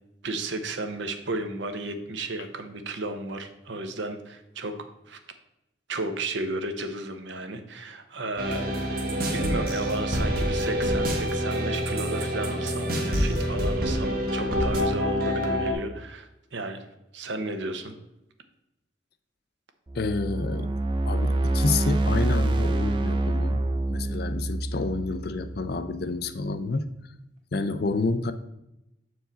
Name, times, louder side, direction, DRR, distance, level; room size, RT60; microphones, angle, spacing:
voice 1, 0.2-4.7 5.1-5.2 5.9-9.0 9.3-16.8 17.1-17.9, right 2 dB, 70° right, 7 dB, 0.8 m, -33 dB
sound 1, 8.4-15.7, equal, 50° right, 1.1 m, -26 dB
voice 2, 19.9-20.7 21.1-23.6 23.9-26.9 27.5-28.3, left 3 dB, 50° left, 11 dB, 0.4 m, -29 dB
sound 2, 19.9-26.1, right 1 dB, 25° right, 0.5 m, -26 dB
7.4 x 4.7 x 4.0 m, 0.88 s
head